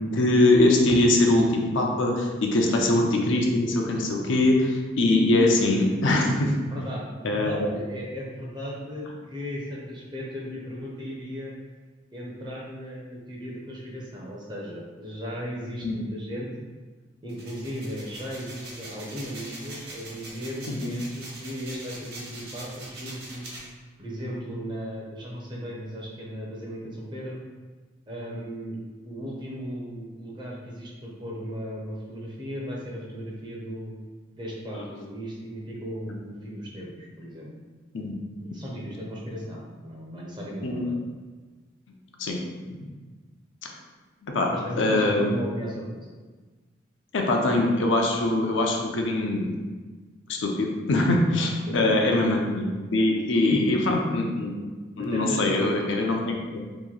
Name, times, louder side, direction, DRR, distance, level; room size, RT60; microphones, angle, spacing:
voice 1, 0.1-6.5 7.2-7.6 15.8-16.0 20.7-20.9 36.0-36.1 37.9-38.1 40.6-40.8 42.2-42.4 42.7-42.9 44.2-44.5 44.8-45.3 47.1-49.5 50.3-54.5 55.0-56.6, left 2 dB, 70° left, 1 dB, 0.5 m, -22 dB
voice 2, 6.6-11.5 12.1-16.5 17.2-23.5 24.0-27.4 28.1-28.8 29.0-33.9 34.3-37.5 38.5-41.0 44.5-46.1 51.6-51.8 53.5-53.6 55.0-55.6, equal, 20° right, -3 dB, 0.6 m, -36 dB
sound 1, 17.3-23.6, right 2 dB, 55° right, 1.1 m, -42 dB
3.0 x 2.6 x 3.8 m, 1.4 s
head